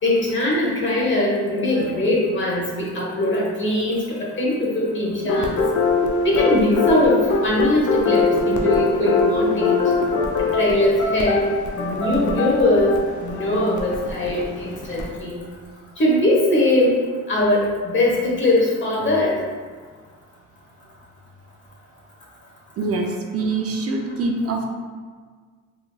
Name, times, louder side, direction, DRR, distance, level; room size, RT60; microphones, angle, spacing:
voice 1, 0.0-5.5 6.2-9.8 10.4-15.5 16.0-17.0 17.3-19.3, left 1 dB, 40° left, -4 dB, 1.1 m, -21 dB
sound 1, 5.3-15.1, left 4 dB, 75° left, 0.6 m, -22 dB
voice 2, 22.8-24.7, right 3 dB, 50° right, 2 dB, 0.5 m, -25 dB
3.9 x 2.9 x 2.3 m, 1.6 s
cardioid pair, 90°, 30 cm